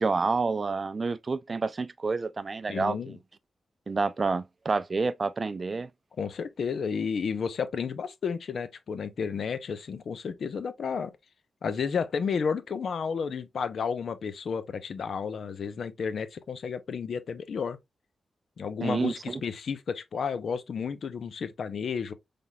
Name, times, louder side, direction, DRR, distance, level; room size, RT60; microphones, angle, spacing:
voice 1, 0.0-3.1 3.9-5.9 18.8-19.4, right 4 dB, 35° right, 0.3 m, -28 dB
voice 2, 2.7-3.2 6.2-11.1 11.6-17.8 18.6-22.1, left 6 dB, 65° left, 0.6 m, -32 dB
5.6 x 3.4 x 2.2 m
wide cardioid pair, 120°, 0 cm